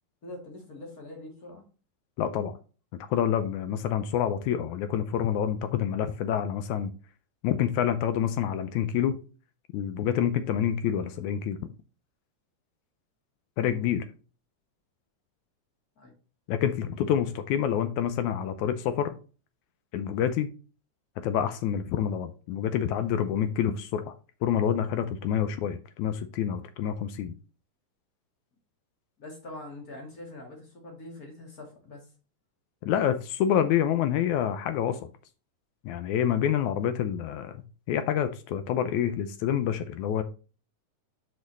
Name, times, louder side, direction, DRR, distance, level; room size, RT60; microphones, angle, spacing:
voice 1, 0.2-1.6 13.6-13.9 16.0-16.1 29.2-32.0, left 2 dB, 30° left, 0 dB, 2.4 m, -43 dB
voice 2, 2.2-2.5 3.1-6.9 7.4-9.2 9.7-11.6 13.6-14.0 16.5-19.1 19.9-20.5 21.2-24.1 24.4-27.3 32.8-35.1 35.9-40.2, left 9 dB, 80° left, 10 dB, 1.8 m, -27 dB
6.1 x 5.3 x 4.0 m, 0.35 s
omnidirectional pair, 3.8 m